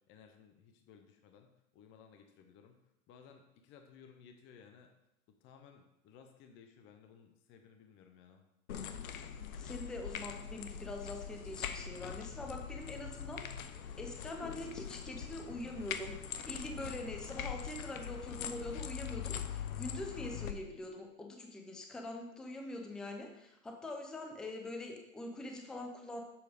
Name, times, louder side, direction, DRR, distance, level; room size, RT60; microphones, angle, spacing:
voice 1, 0.1-4.9 5.4-8.4, left 7 dB, 30° left, 5 dB, 0.7 m, -59 dB
sound 1, 8.7-20.5, left 8 dB, 75° left, 0.8 m, -42 dB
voice 2, 9.6-13.7 14.0-26.2, left 1 dB, ahead, 2 dB, 0.4 m, -44 dB
7.1 x 4.8 x 5.0 m, 0.87 s
hypercardioid pair, 120°, 42 cm